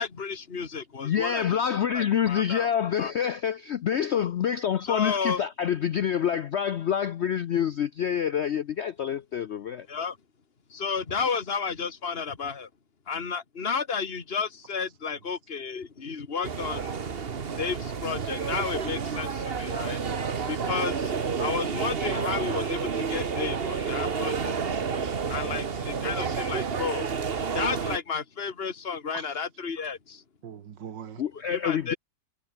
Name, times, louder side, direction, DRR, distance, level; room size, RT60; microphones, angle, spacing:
voice 1, 0.0-1.6 1.9-2.7 3.0-3.1 4.9-5.4 9.9-10.2 10.7-12.7 13.1-16.9 17.6-20.0 20.5-21.1 21.4-24.5 25.3-27.1 27.5-30.2 31.5-32.0, left 5 dB, 35° left, 2.1 m, -32 dB
voice 2, 1.0-9.9 31.2-31.9, left 8 dB, 75° left, 0.6 m, -27 dB
sound 1, 16.4-28.0, right 6 dB, 35° right, 1.3 m, -30 dB
voice 3, 17.3-17.7 24.8-25.9 29.1-29.2 30.4-31.2, right 8 dB, 80° right, 2.2 m, -43 dB
omnidirectional pair, 1.9 m